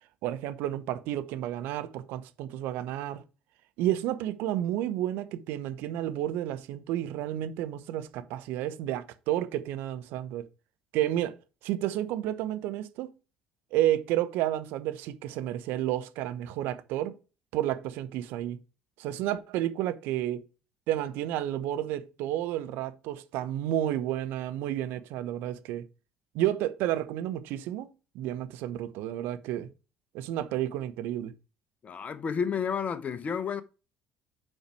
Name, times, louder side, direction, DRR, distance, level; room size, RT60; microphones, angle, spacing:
voice 1, 0.2-3.2 3.8-10.4 10.9-11.3 11.6-13.1 13.7-17.1 17.5-18.6 19.0-20.4 20.9-25.8 26.3-27.9 28.1-29.7 30.1-31.3, right 12 dB, 65° right, 0.9 m, -31 dB
voice 2, 31.8-33.6, left 6 dB, 40° left, 0.9 m, -31 dB
7.6 x 4.8 x 4.7 m
figure-of-eight pair, 55°, 4 cm